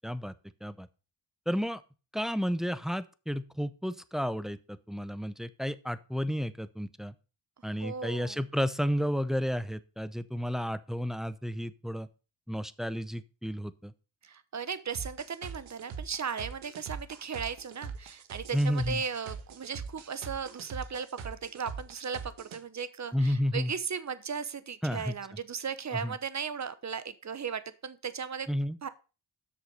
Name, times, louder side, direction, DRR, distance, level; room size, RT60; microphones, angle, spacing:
voice 1, 0.0-0.3 0.6-0.9 1.5-1.8 2.1-7.1 7.6-12.1 12.5-13.9 18.5-19.0 23.1-23.7 24.8-25.1 26.0-26.2 28.5-28.8, equal, ahead, 13 dB, 0.7 m, -32 dB
voice 2, 7.8-8.4 14.2-28.5 28.8-28.9, right 6 dB, 35° right, 14 dB, 1.0 m, -36 dB
sound 1, 14.9-22.6, right 6 dB, 85° right, 1.5 m, -42 dB
8.3 x 6.4 x 5.4 m, 0.33 s
cardioid pair, 65°, 46 cm